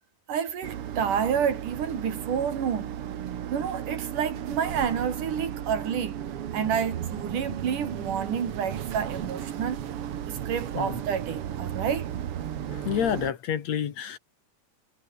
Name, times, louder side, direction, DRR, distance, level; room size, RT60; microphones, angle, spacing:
voice 1, 0.3-2.9 3.5-6.2 6.5-9.8 10.3-12.1, right 7 dB, 90° right, 4.4 m, -29 dB
sound 1, 0.6-13.3, right 10 dB, 55° right, 2.0 m, -35 dB
voice 2, 12.7-14.2, left 9 dB, 65° left, 2.9 m, -29 dB
omnidirectional pair, 3.5 m